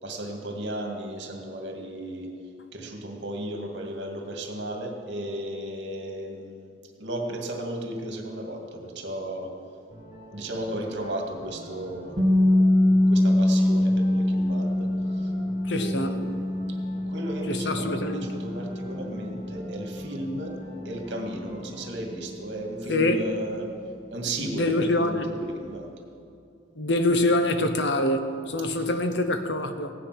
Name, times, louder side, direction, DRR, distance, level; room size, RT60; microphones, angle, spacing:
voice 1, 0.0-2.3 2.7-6.7 7.0-9.5 10.3-12.1 13.1-14.9 15.2-15.3 15.8-20.6 20.8-23.7 24.1-25.9 28.7-28.9, right 1 dB, 65° right, 2 dB, 2.1 m, -35 dB
sound 1, 9.9-21.9, right 1 dB, 40° left, 3.4 m, -46 dB
sound 2, 12.2-24.0, left 1 dB, 20° right, 2.2 m, -25 dB
voice 2, 15.7-16.2 17.5-18.3 22.9-23.2 24.5-25.3 26.8-29.9, left 1 dB, 70° left, 8 dB, 1.0 m, -25 dB
16.5 x 10.0 x 6.0 m, 2.5 s
head